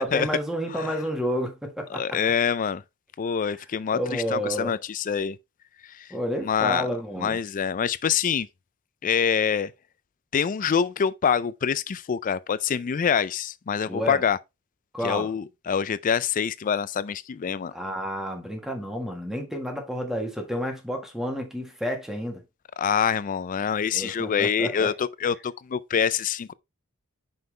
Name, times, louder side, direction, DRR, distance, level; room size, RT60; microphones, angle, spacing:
voice 1, 0.0-2.2 3.9-4.7 6.1-7.4 13.9-14.2 14.9-15.3 17.7-22.4 23.9-24.9, equal, ahead, 1.5 m, -30 dB
voice 2, 1.9-2.8 3.2-5.4 6.0-6.1 6.4-6.9 7.2-8.5 9.0-9.7 10.3-14.4 15.0-17.7 22.8-26.5, left 7 dB, 35° left, 0.3 m, -25 dB
5.7 x 5.4 x 3.2 m
head